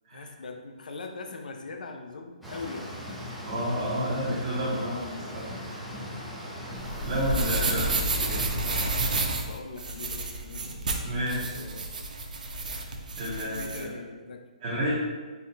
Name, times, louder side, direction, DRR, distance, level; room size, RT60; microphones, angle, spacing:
voice 1, 0.1-2.9 7.3-11.0 11.3-11.9 13.3-14.4, left 3 dB, 90° left, 5 dB, 0.5 m, -41 dB
sound 1, 2.4-9.2, equal, ahead, 0.3 m, -39 dB
voice 2, 3.4-5.5 7.0-7.8 11.0-11.5 12.6-12.8 13.1-13.9 14.6-14.9, equal, 25° right, -9 dB, 0.7 m, -30 dB
sound 2, 6.7-13.8, right 2 dB, 75° right, 0.5 m, -30 dB
4.0 x 2.1 x 3.9 m, 1.4 s
hypercardioid pair, 175°, 4 cm